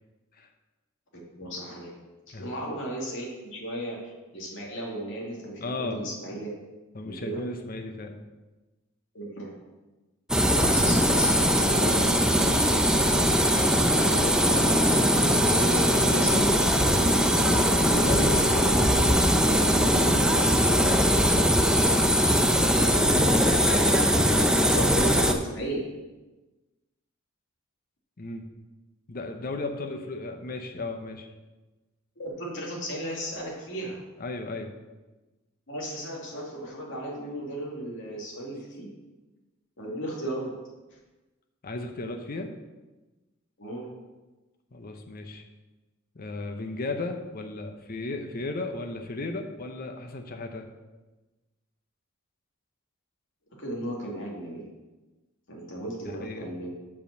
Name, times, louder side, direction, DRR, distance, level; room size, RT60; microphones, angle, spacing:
voice 1, 1.4-1.9 2.3-4.0 4.3-6.5 7.0-7.4 9.1-9.5 10.6-12.1 12.4-13.0 16.2-16.3 23.5-24.0 24.5-25.9 32.2-34.0 35.7-38.9 39.8-40.5 43.6-43.9 53.6-54.6 55.5-56.7, right 1 dB, 65° left, -2 dB, 2.3 m, -35 dB
voice 2, 5.6-6.1 6.9-8.1 14.0-14.8 15.5-16.6 17.3-21.2 28.2-28.4 29.1-31.3 34.2-34.7 41.6-42.5 44.7-45.4 46.1-50.6 56.1-56.5, left 2 dB, 45° left, 5 dB, 0.8 m, -35 dB
sound 1, 10.3-25.3, equal, 5° right, 0.6 m, -21 dB
7.3 x 5.1 x 6.7 m, 1.1 s
head